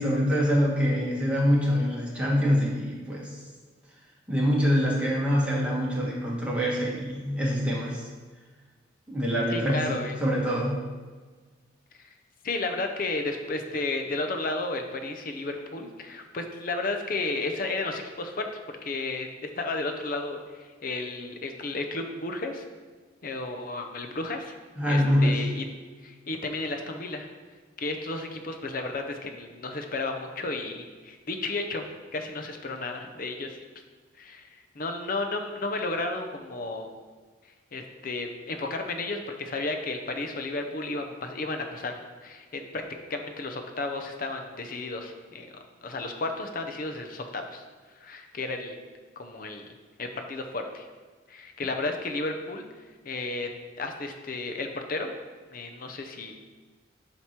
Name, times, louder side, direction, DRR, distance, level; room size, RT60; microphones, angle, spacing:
voice 1, 0.0-3.4 4.3-8.1 9.1-10.8 24.8-25.4, equal, 5° right, -5 dB, 1.4 m, -25 dB
voice 2, 9.5-10.2 12.0-12.1 12.4-18.5 18.8-22.6 23.2-24.6 24.8-25.6 26.0-27.3 27.8-31.8 32.1-33.6 34.2-36.9 37.7-42.8 43.1-45.5 45.8-47.6 48.0-48.8 49.2-49.7 50.0-50.9 51.3-52.6 53.0-53.5 53.8-55.1 55.5-56.3, left 2 dB, 45° left, 5 dB, 0.6 m, -33 dB
7.8 x 3.0 x 5.8 m, 1.4 s
head